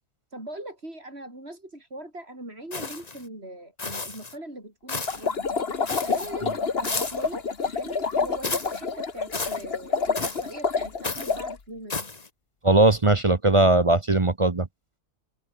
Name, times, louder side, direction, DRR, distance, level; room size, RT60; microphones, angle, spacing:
voice 1, 0.3-5.4 6.0-12.1, right 1 dB, 50° right, 7.5 m, -41 dB
sound 1, 2.7-3.2 3.8-4.3 4.9-5.3 5.9-6.3 6.8-7.3 8.4-8.8 9.3-9.6 10.2-10.5 11.0-11.4 11.9-12.3, left 3 dB, 30° left, 1.5 m, -32 dB
sound 2, 5.1-11.6, left 5 dB, 50° left, 1.8 m, -28 dB
voice 2, 12.6-14.7, right 2 dB, 25° right, 0.9 m, -19 dB
omnidirectional pair, 1.4 m